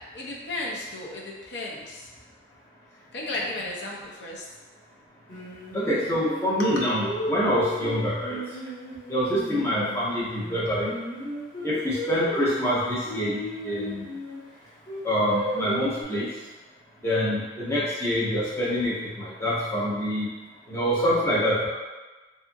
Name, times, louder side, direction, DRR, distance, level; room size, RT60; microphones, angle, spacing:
voice 1, 0.1-2.1 3.1-4.4, left 2 dB, 65° left, -3 dB, 0.5 m, -34 dB
Singing, 5.3-10.0 10.4-14.4 14.9-16.0, left 1 dB, 35° left, 1.3 m, -34 dB
voice 2, 5.7-8.4 9.1-10.9 11.6-14.1 15.0-16.3 17.0-20.3 20.7-21.7, equal, 15° left, -8 dB, 0.6 m, -26 dB
2.7 x 2.4 x 2.5 m, 1.2 s
head